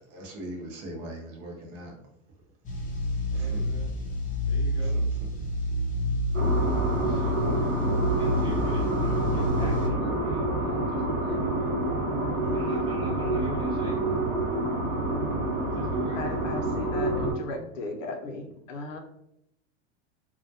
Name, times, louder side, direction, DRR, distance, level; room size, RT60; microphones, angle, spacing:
voice 1, 0.1-2.0 3.3-3.8 4.8-5.3, right 1 dB, 40° right, 1 dB, 0.7 m, -41 dB
sound 1, 2.6-9.9, left 1 dB, 20° left, 0.5 m, -28 dB
voice 2, 3.3-3.9 4.5-5.0 7.0-7.4 8.2-10.7 10.9-11.5 12.5-14.0 15.7-16.5, right 1 dB, 15° right, -4 dB, 1.0 m, -43 dB
sound 2, 6.3-17.3, right 2 dB, 80° right, 0.8 m, -28 dB
voice 3, 12.4-12.9 13.4-13.5 16.1-19.0, left 2 dB, 90° left, 4 dB, 0.6 m, -37 dB
2.2 x 2.1 x 2.6 m, 0.77 s
supercardioid pair, 120°, 37 cm